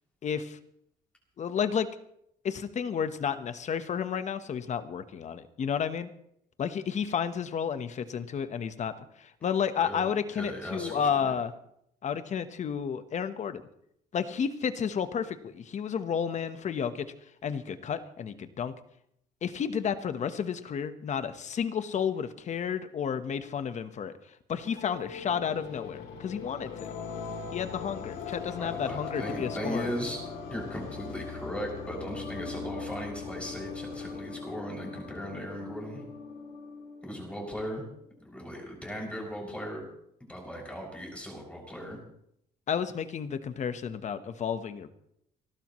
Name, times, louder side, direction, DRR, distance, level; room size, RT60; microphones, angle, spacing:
voice 1, 0.2-0.6 1.4-1.9 2.4-6.1 6.6-11.5 12.0-13.6 14.1-17.1 17.4-18.7 19.4-24.1 24.5-26.9 27.5-29.9 42.7-44.9, left 7 dB, 45° left, 11 dB, 1.2 m, -31 dB
voice 2, 9.8-11.4 28.6-30.2 30.5-36.0 37.0-37.8 38.3-39.8 40.3-42.0, equal, 5° left, -1 dB, 6.6 m, -38 dB
sound 1, 24.6-37.5, left 5 dB, 90° left, 2.8 m, -40 dB
29.5 x 12.0 x 3.2 m, 0.75 s
cardioid pair, 110°, 17 cm